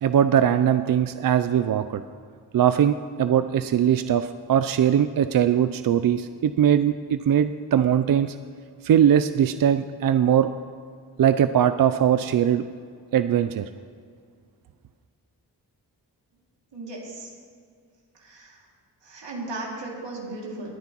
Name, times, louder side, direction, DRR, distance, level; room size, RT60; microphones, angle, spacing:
voice 1, 0.0-2.0 2.5-8.3 8.8-10.5 11.2-12.6 13.1-13.6, right 9 dB, 55° right, 11 dB, 0.5 m, -21 dB
voice 2, 16.7-17.3 18.2-18.6 19.0-20.7, right 2 dB, 80° right, -3 dB, 2.5 m, -36 dB
20.5 x 9.2 x 3.0 m, 2.1 s
cardioid pair, 40°, 43 cm